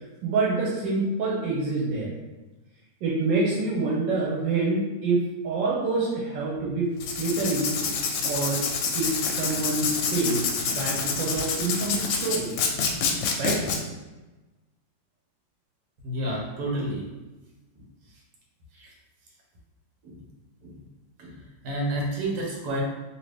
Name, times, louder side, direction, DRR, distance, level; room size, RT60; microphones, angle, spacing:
voice 1, 0.2-2.1 3.0-6.9 7.2-7.8 8.2-8.6 8.9-12.5 13.4-13.6, right 3 dB, 80° right, -4 dB, 1.3 m, -26 dB
Writing, 7.0-13.8, left 5 dB, 80° left, 1.2 m, -27 dB
voice 2, 16.0-17.0 17.7-17.8 18.7-18.9 20.0-20.2 20.6-20.8 21.2-22.8, right 1 dB, 60° right, -2 dB, 1.3 m, -30 dB
3.0 x 2.8 x 3.3 m, 1.1 s
omnidirectional pair, 2.0 m